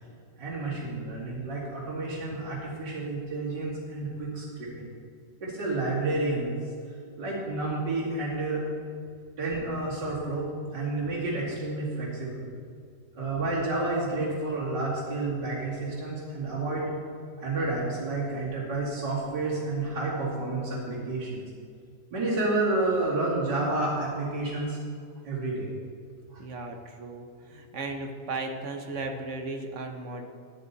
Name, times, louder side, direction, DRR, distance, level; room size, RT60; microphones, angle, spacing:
voice 1, 0.4-4.9 5.4-6.5 7.2-8.6 9.4-12.4 13.1-16.9 17.4-21.4 22.1-24.8 25.2-25.7 26.3-26.4, right 2 dB, 75° right, -10 dB, 3.2 m, -30 dB
voice 2, 26.4-30.3, right 3 dB, 50° right, 3 dB, 1.2 m, -36 dB
13.0 x 9.3 x 4.1 m, 2.2 s
omnidirectional pair, 1.9 m